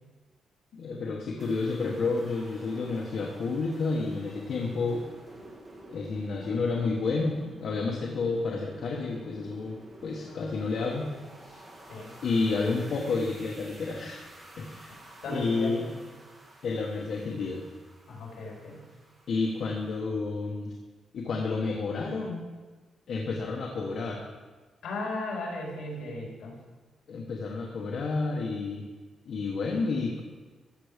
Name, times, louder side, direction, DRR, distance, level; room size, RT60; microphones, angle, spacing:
voice 1, 0.7-5.1 5.9-9.8 10.0-11.1 11.4-11.6 12.2-14.3 14.6-14.9 15.3-15.8 16.6-17.6 19.3-20.7 21.1-22.5 23.1-24.2 27.1-28.8 29.2-30.2, left 3 dB, 55° left, -1 dB, 1.3 m, -30 dB
sound 1, 1.4-20.0, right 1 dB, 25° right, 1.7 m, -50 dB
voice 2, 15.2-16.0 18.1-18.8 24.8-26.5, left 2 dB, 70° left, -2 dB, 3.8 m, -36 dB
14.5 x 6.9 x 5.1 m, 1.3 s
wide cardioid pair, 170°, 0 cm